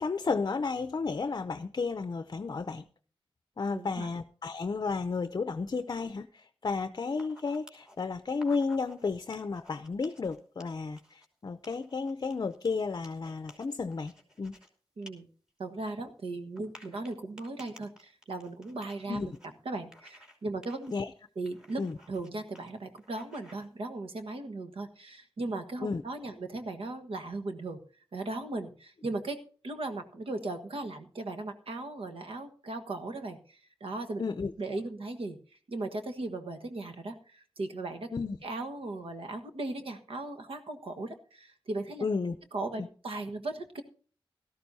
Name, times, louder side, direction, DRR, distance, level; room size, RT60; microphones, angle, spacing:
voice 1, 0.0-2.8 3.6-14.6 19.1-19.3 20.9-21.1 21.8-22.0 25.8-26.0 34.2-34.5 38.1-38.4 42.0-42.4 42.8-42.9, left 4 dB, 45° left, 10 dB, 0.6 m, -32 dB
voice 2, 3.7-4.1 15.0-15.3 15.6-19.3 19.6-20.9 21.4-21.8 22.1-27.8 28.1-29.4 29.6-34.2 34.6-35.4 35.7-38.1 38.4-42.0 42.5-43.8, right 2 dB, 85° right, 7 dB, 1.4 m, -37 dB
sound 1, 7.1-8.0 8.3-9.0 9.3-11.3 11.6-14.7 15.0-15.1 15.5-15.6 16.6-19.5 19.9-20.4 20.6-20.9 21.5-22.3 22.6-22.7 23.0-23.7, left 1 dB, 10° right, 2.8 m, -55 dB
17.5 x 13.5 x 2.7 m, 0.42 s
wide cardioid pair, 125°, 9 cm